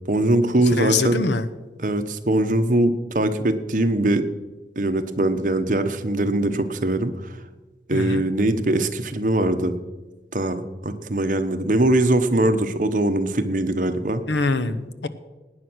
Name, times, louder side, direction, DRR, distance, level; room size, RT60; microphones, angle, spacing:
voice 1, 0.1-1.2 1.8-4.2 4.8-7.3 7.9-9.7 10.3-14.2, right 1 dB, 45° right, 8 dB, 1.0 m, -21 dB
voice 2, 0.8-1.5 7.9-8.3 14.3-15.1, left 3 dB, 85° left, 12 dB, 1.0 m, -24 dB
17.5 x 9.6 x 6.2 m, 1.2 s
head